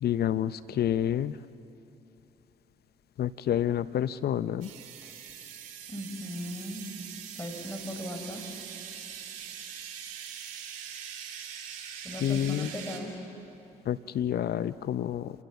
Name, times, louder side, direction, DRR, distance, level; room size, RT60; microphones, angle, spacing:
voice 1, 0.0-1.3 3.2-4.7 12.2-12.7 13.9-15.3, left 10 dB, 60° left, 15 dB, 0.6 m, -28 dB
sound 1, 4.6-13.0, right 8 dB, 90° right, 2.0 m, -42 dB
voice 2, 5.9-6.8 7.4-8.4 12.0-13.1, equal, 15° left, 3 dB, 4.8 m, -37 dB
29.0 x 16.5 x 7.1 m, 2.8 s
hypercardioid pair, 45°, 18 cm